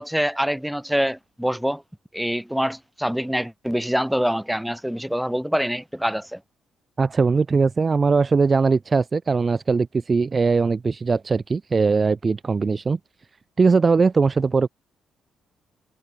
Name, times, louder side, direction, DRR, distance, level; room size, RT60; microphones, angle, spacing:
voice 1, 0.0-1.8 2.1-6.4, equal, ahead, 2.7 m, -25 dB
voice 2, 7.0-13.0 13.6-14.7, right 4 dB, 35° right, 1.1 m, -20 dB
cardioid pair, 90°, 0 cm